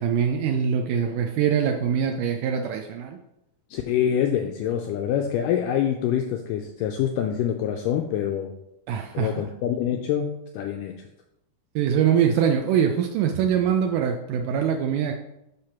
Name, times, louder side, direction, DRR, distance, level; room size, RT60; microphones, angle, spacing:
voice 1, 0.0-3.2 8.9-9.5 11.8-15.1, right 8 dB, 90° right, 4 dB, 1.8 m, -23 dB
voice 2, 3.7-8.5 9.1-11.0, left 9 dB, 85° left, 4 dB, 1.9 m, -25 dB
9.9 x 3.4 x 5.7 m, 0.86 s
omnidirectional pair, 4.4 m